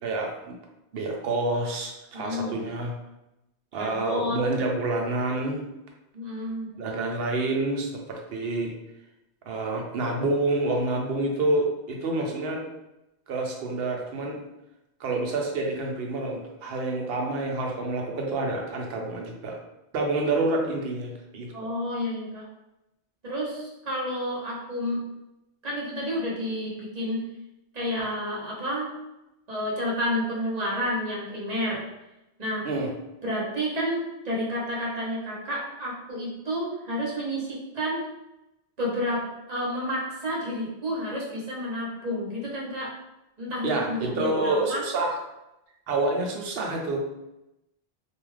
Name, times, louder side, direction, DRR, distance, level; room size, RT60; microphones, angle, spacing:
voice 1, 0.0-0.5 0.9-2.9 3.7-5.6 6.8-8.7 9.5-12.7 13.3-14.4 15.0-19.6 19.9-21.5 32.6-32.9 43.6-45.2 45.9-47.0, right 2 dB, 65° right, 1 dB, 0.8 m, -28 dB
voice 2, 2.1-2.6 3.8-4.4 6.1-6.7 21.5-22.5 23.2-25.0 25.6-27.2 27.7-28.9 29.5-31.8 32.4-32.7 33.2-38.0 38.8-39.2 39.5-42.9 43.4-44.8, equal, 40° right, -6 dB, 0.9 m, -30 dB
2.7 x 2.3 x 3.2 m, 0.92 s
omnidirectional pair, 1.2 m